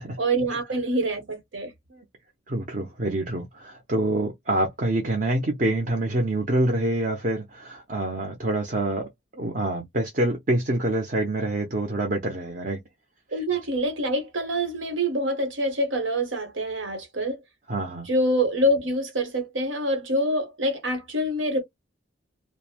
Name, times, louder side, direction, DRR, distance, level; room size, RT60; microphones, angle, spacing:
voice 1, 0.2-1.7 13.3-17.4 18.1-21.6, right 1 dB, 85° right, 1.1 m, -25 dB
voice 2, 2.5-12.8 13.3-13.4 17.7-18.1, right 1 dB, 45° right, 0.7 m, -26 dB
2.6 x 2.0 x 2.8 m
head